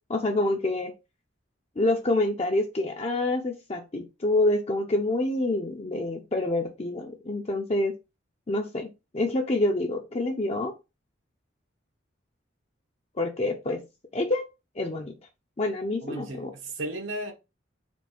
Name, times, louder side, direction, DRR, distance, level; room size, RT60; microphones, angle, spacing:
voice 1, 0.1-0.9 1.8-7.9 8.5-8.9 9.1-10.7 13.2-13.8 14.1-14.4 14.8-15.2 15.6-16.5, left 2 dB, 30° left, 0.5 m, -27 dB
voice 2, 16.0-17.3, right 1 dB, 80° right, 1.2 m, -35 dB
4.3 x 2.5 x 4.3 m
head